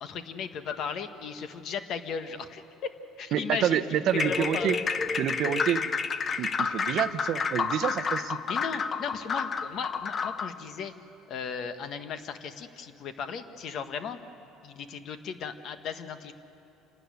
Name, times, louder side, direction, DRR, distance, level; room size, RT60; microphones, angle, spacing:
voice 1, 0.0-2.9 3.2-4.8 6.2-6.4 8.5-10.9 11.3-14.2 14.6-16.3, left 6 dB, 50° left, 9 dB, 1.2 m, -36 dB
voice 2, 3.3-4.8 5.2-5.8 6.4-8.4, right 10 dB, 55° right, 10 dB, 0.8 m, -28 dB
sound 1, 4.1-10.6, left 5 dB, 30° left, 0.6 m, -30 dB
28.0 x 12.5 x 9.6 m, 2.9 s
cardioid pair, 135°, 0 cm